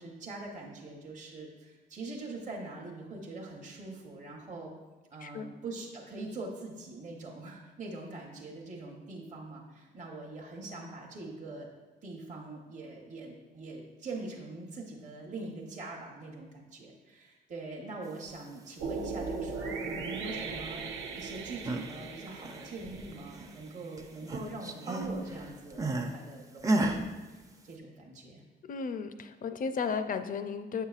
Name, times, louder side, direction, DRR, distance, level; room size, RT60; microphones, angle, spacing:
voice 1, 0.0-4.7 5.1-11.7 12.0-20.8 21.1-27.0 27.3-28.4, right 2 dB, 40° right, -2 dB, 1.0 m, -43 dB
sound 1, 18.8-24.0, right 4 dB, 70° right, 0.6 m, -39 dB
sound 2, 21.4-22.0 22.3-23.7 24.0-26.2 26.6-27.0, right 2 dB, 15° right, 0.5 m, -32 dB
voice 2, 28.7-30.9, left 5 dB, 45° left, 10 dB, 0.5 m, -34 dB
7.2 x 5.6 x 2.4 m, 1.2 s
cardioid pair, 90°, 20 cm